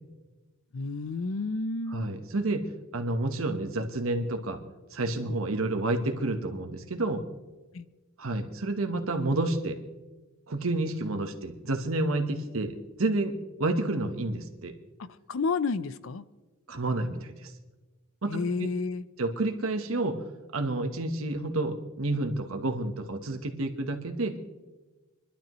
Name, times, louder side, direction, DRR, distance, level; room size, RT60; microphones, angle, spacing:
voice 1, 0.7-2.1 5.3-5.4 7.7-7.9 15.0-16.3 18.3-19.0, left 4 dB, 75° left, 15 dB, 0.5 m, -31 dB
voice 2, 1.9-2.7 2.9-4.6 4.9-7.2 8.2-9.8 10.5-13.3 13.6-14.8 16.7-17.5 18.2-18.4 19.2-20.2 20.5-24.4, right 2 dB, 90° right, 6 dB, 1.2 m, -29 dB
26.5 x 11.5 x 3.1 m, 1.2 s
head